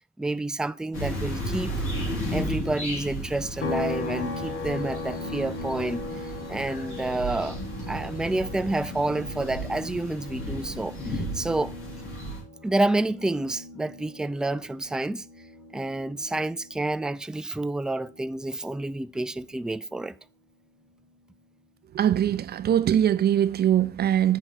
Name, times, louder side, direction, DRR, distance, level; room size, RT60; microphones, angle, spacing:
voice 1, 0.2-1.7 2.3-6.0 6.5-7.6 7.9-11.7 12.6-15.2 15.7-20.1, right 2 dB, 5° right, 0.4 m, -29 dB
sound 1, 0.9-12.4, equal, 90° left, 3.7 m, -34 dB
sound 2, 3.6-17.2 17.5-19.7, left 2 dB, 70° left, 1.2 m, -38 dB
voice 2, 21.9-24.4, right 10 dB, 55° right, 0.5 m, -22 dB
7.7 x 6.1 x 4.1 m
cardioid pair, 90°, 20 cm